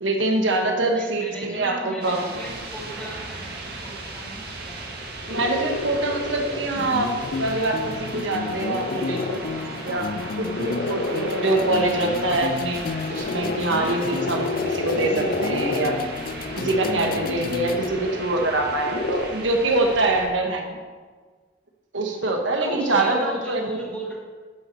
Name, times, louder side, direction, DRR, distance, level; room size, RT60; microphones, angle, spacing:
voice 1, 0.0-2.3 5.3-7.1 7.4-10.1 10.4-16.0 16.6-20.8 21.9-23.8, right 2 dB, 80° right, 2 dB, 1.3 m, -24 dB
voice 2, 0.9-4.8 17.8-18.0 22.6-24.2, right 1 dB, 5° left, -5 dB, 2.3 m, -36 dB
sound 1, 2.0-20.3, right 2 dB, 55° right, 1.7 m, -37 dB
sound 2, 5.0-19.3, left 2 dB, 75° left, 0.9 m, -31 dB
sound 3, 6.7-17.9, left 4 dB, 50° left, 0.4 m, -32 dB
11.0 x 9.2 x 4.1 m, 1.5 s
head